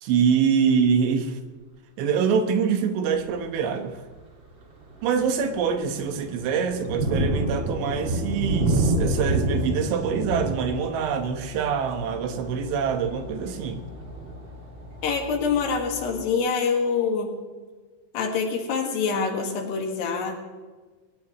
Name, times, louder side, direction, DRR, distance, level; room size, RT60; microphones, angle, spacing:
voice 1, 0.0-1.4 2.0-4.0 5.0-13.8, right 6 dB, 80° right, 6 dB, 3.6 m, -25 dB
Thunder, 3.1-3.4 4.0-4.2 4.6-15.2, right 2 dB, 40° right, 1.7 m, -29 dB
sound 1, 10.3-16.2, left 2 dB, 20° right, 5.9 m, -45 dB
voice 2, 15.0-17.4 18.1-20.4, left 5 dB, 65° left, 3 dB, 3.6 m, -25 dB
21.5 x 18.0 x 3.1 m, 1.4 s
omnidirectional pair, 5.4 m